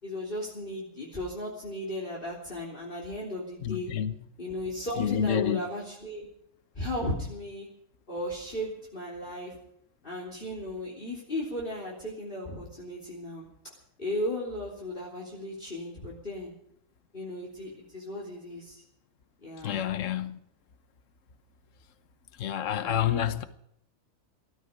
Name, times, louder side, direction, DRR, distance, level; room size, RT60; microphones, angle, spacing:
voice 1, 0.0-3.9 4.4-6.3 6.8-7.7 8.1-9.5 10.0-13.4 14.0-16.5 17.1-18.8 19.4-19.8 22.8-23.1, left 1 dB, 35° left, 3.7 m, -36 dB
voice 2, 3.6-4.1 5.0-5.6 19.6-20.4 22.4-23.4, left 9 dB, 60° left, 1.3 m, -28 dB
19.5 x 13.5 x 5.2 m
omnidirectional pair, 1.5 m